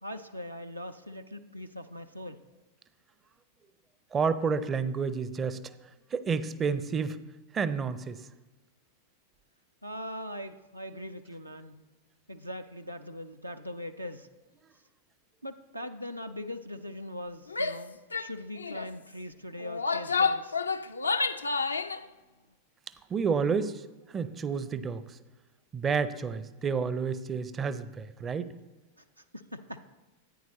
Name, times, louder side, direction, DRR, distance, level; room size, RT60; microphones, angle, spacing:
voice 1, 0.0-2.4 9.8-11.8 12.3-14.3 15.4-20.6 29.0-29.8, left 1 dB, 85° right, 7 dB, 0.5 m, -41 dB
voice 2, 4.1-5.6 6.1-7.2 7.5-8.2 23.1-23.8 24.1-25.2 25.7-28.5, right 5 dB, 20° right, 14 dB, 0.5 m, -30 dB
Female speech woman speaking / Yell, 17.5-17.8 18.1-18.3 18.6-18.9 19.6-22.0, left 4 dB, 80° left, 0.4 m, -29 dB
14.0 x 9.3 x 3.0 m, 1.2 s
figure-of-eight pair, 90°, 0 cm